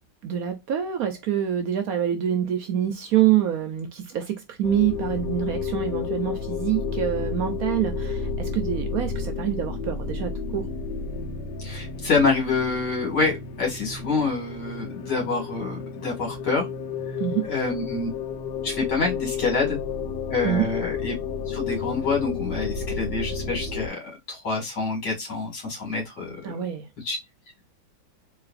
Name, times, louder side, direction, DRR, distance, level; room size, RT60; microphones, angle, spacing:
voice 1, 0.2-10.7 17.2-17.4 20.4-20.7 26.4-26.9, right 10 dB, 65° right, 0.9 m, -26 dB
sound 1, 4.6-23.9, left 5 dB, 90° left, 1.4 m, -31 dB
voice 2, 11.6-16.7 17.4-18.1 18.6-19.8 20.3-21.1 21.5-24.0 24.3-26.4 27.0-27.2, left 4 dB, 70° left, 2.5 m, -26 dB
4.0 x 3.1 x 2.4 m
omnidirectional pair, 1.9 m